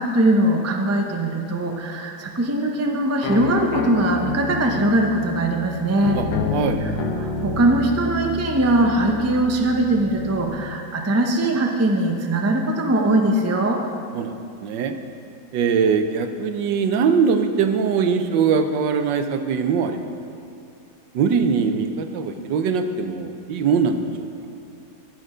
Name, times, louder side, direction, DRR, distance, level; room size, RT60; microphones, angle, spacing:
voice 1, 0.0-6.2 6.8-6.9 7.2-13.8, right 1 dB, 20° right, 2 dB, 0.4 m, -21 dB
sound 1, 3.2-10.7, left 3 dB, 70° left, 1.3 m, -29 dB
voice 2, 6.5-6.8 14.1-14.3 14.6-14.9 15.5-20.1 21.1-24.3, right 6 dB, 85° right, 7 dB, 1.4 m, -21 dB
13.5 x 7.8 x 5.0 m, 2.4 s
omnidirectional pair, 1.9 m